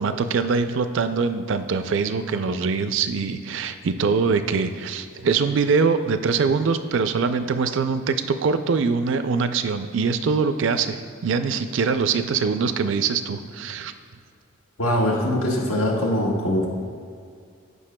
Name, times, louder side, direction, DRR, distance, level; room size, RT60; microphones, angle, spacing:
voice 1, 0.0-13.9, right 5 dB, 60° right, 9 dB, 0.4 m, -23 dB
voice 2, 14.8-16.7, left 1 dB, 90° left, -2 dB, 1.4 m, -22 dB
14.5 x 5.4 x 2.2 m, 2.3 s
head